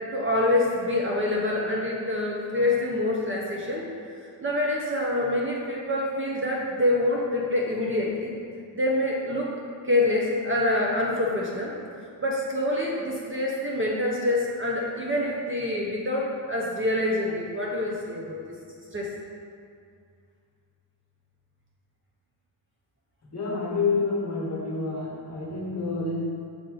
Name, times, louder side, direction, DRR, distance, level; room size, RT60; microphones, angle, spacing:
voice 1, 0.0-3.9 4.4-8.3 8.7-9.5 9.9-11.7 12.2-18.4 18.9-19.1, left 1 dB, 30° right, -3 dB, 0.6 m, -26 dB
voice 2, 23.3-26.2, left 4 dB, 35° left, -4 dB, 1.2 m, -28 dB
6.8 x 4.1 x 3.8 m, 2.3 s
wide cardioid pair, 145°, 46 cm